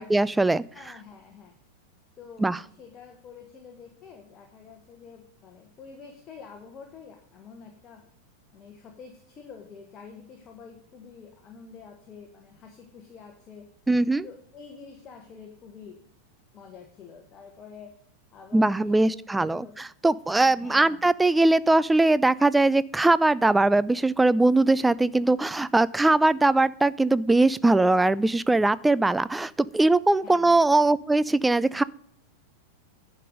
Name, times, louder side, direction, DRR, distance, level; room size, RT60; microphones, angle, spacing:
voice 1, 0.0-0.6 2.4-2.6 13.9-14.3 18.5-31.8, right 2 dB, 5° right, 18 dB, 0.4 m, -21 dB
voice 2, 0.7-1.5 2.2-8.0 8.5-13.7 14.2-16.0 16.5-17.9 18.3-19.7 20.4-21.1 30.2-30.6, left 6 dB, 30° left, 3 dB, 1.5 m, -47 dB
10.5 x 5.3 x 6.4 m, 0.65 s
figure-of-eight pair, 90°, 0 cm